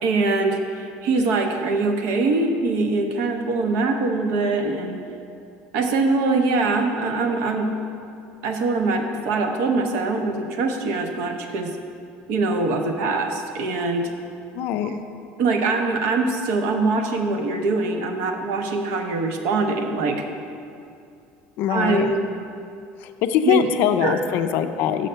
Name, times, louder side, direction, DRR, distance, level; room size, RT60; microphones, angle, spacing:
voice 1, 0.0-5.0 5.7-7.7 8.4-11.7 12.3-14.1 14.8-15.0 15.4-20.2 21.7-22.2 23.4-23.6 24.0-24.2, right 3 dB, 60° right, 4 dB, 0.8 m, -23 dB
voice 2, 14.5-14.9 21.6-22.1 23.0-25.1, left 9 dB, 50° left, 9 dB, 0.4 m, -22 dB
6.4 x 5.4 x 6.7 m, 2.6 s
cardioid pair, 170°, 4 cm